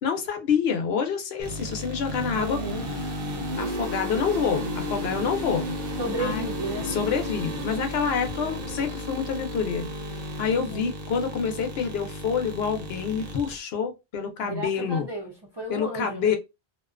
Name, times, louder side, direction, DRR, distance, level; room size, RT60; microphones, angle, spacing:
voice 1, 0.0-2.6 3.0-3.1 3.6-5.7 6.2-6.4 6.9-9.9 10.4-15.1 15.7-16.4, left 6 dB, 75° left, 0.9 m, -27 dB
sound 1, 1.4-13.6, left 1 dB, 65° right, 0.8 m, -33 dB
voice 2, 2.4-2.9 6.0-6.9 10.5-10.9 14.4-16.3, right 1 dB, 35° right, 0.5 m, -33 dB
2.5 x 2.2 x 2.3 m
omnidirectional pair, 1.1 m